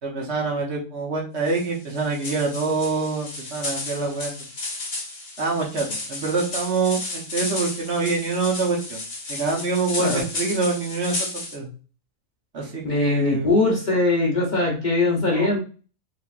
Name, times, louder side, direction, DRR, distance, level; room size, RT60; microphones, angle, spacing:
voice 1, 0.0-4.3 5.4-9.0 9.3-11.7 12.5-13.5 15.4-15.5, right 3 dB, 60° right, -1 dB, 1.1 m, -25 dB
sound 1, 1.5-11.5, left 2 dB, 90° left, 1.7 m, -33 dB
voice 2, 12.8-15.6, left 2 dB, 40° left, -2 dB, 0.8 m, -21 dB
3.6 x 3.4 x 2.4 m, 0.37 s
omnidirectional pair, 1.4 m